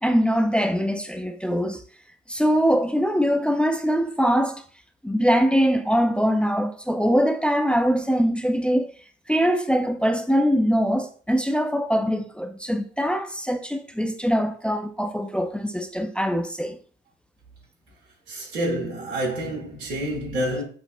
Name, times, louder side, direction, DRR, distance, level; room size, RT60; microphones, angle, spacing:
voice 1, 0.0-1.8 2.3-4.6 5.0-8.9 9.3-16.8, equal, 5° left, 0.5 m, -22 dB
voice 2, 18.3-20.6, right 1 dB, 80° right, 1.4 m, -28 dB
6.0 x 2.7 x 2.5 m
figure-of-eight pair, 50°, 33 cm